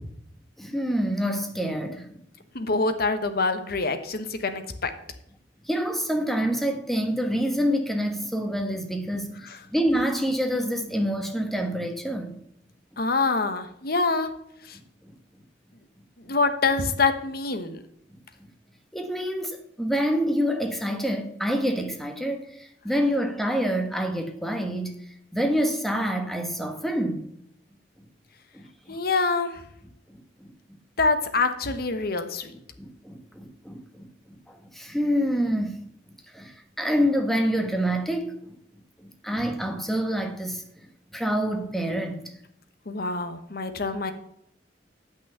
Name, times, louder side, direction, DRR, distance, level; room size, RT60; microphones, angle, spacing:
voice 1, 0.6-2.2 5.6-12.4 18.9-25.0 25.3-27.3 28.5-29.0 30.4-30.8 32.8-34.1 34.5-35.8 36.3-38.6 39.0-40.6 41.1-42.3, equal, ahead, 1.3 m, -27 dB
voice 2, 2.5-4.9 9.4-9.6 13.0-14.3 14.6-14.8 16.3-17.8 28.9-29.6 31.0-32.5 42.9-44.1, left 3 dB, 60° left, 1.1 m, -25 dB
8.4 x 6.2 x 6.8 m
head